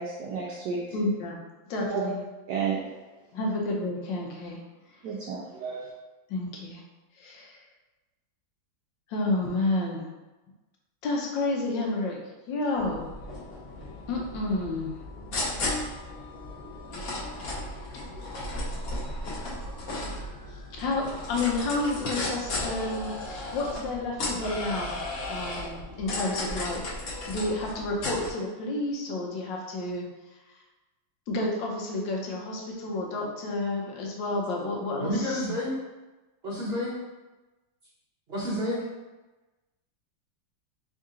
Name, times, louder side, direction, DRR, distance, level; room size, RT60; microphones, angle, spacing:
voice 1, 0.0-0.8 1.9-2.1 2.5-2.8 5.0-5.9, right 6 dB, 75° right, -4 dB, 1.0 m, -31 dB
voice 2, 0.9-1.4 1.7-2.2 3.3-4.6 6.3-6.8 7.2-7.6 9.1-10.0 11.0-12.2 12.5-13.0 14.1-14.9 20.5-25.0 25.3-26.8 27.3-30.0 31.3-35.5, left 2 dB, 75° left, -1 dB, 1.4 m, -30 dB
sound 1, 12.7-28.3, left 2 dB, 55° left, 1.2 m, -35 dB
voice 3, 35.0-35.8 36.4-37.0 38.3-38.8, left 1 dB, 45° right, -8 dB, 0.8 m, -29 dB
3.6 x 2.7 x 3.6 m, 1.1 s
omnidirectional pair, 2.1 m